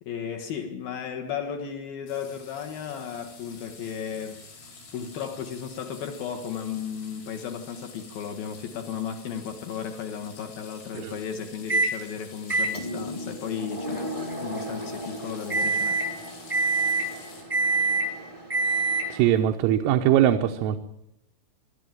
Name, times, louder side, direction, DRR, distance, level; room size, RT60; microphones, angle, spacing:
voice 1, 0.0-4.4 4.9-14.1 14.4-16.0, left 7 dB, 60° left, 2.6 m, -34 dB
sound 1, 2.1-17.4, left 4 dB, 85° left, 9.1 m, -48 dB
Microwave oven, 11.7-12.0 12.5-19.3, right 3 dB, 65° right, 0.3 m, -27 dB
voice 2, 19.1-20.8, right 11 dB, 85° right, 3.7 m, -21 dB
25.5 x 13.0 x 9.1 m
omnidirectional pair, 5.8 m